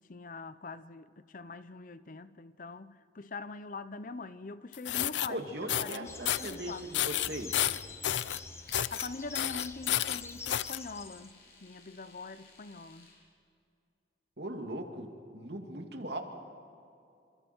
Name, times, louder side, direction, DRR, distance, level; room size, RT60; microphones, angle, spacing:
voice 1, 0.1-6.8 8.9-13.1, left 3 dB, 50° left, 0.7 m, -43 dB
sound 1, 4.7-5.3 5.7-6.0 6.3-6.6 6.9-8.4 8.7-9.1 9.3-10.8, left 12 dB, 85° left, 0.5 m, -31 dB
Domestic sounds home sounds, 5.2-13.2, left 3 dB, 65° left, 7.8 m, -58 dB
voice 2, 5.3-7.5 14.4-16.2, right 1 dB, 65° right, 2.6 m, -39 dB
sound 2, 6.0-11.3, left 3 dB, 15° left, 1.0 m, -46 dB
28.5 x 26.5 x 4.6 m
head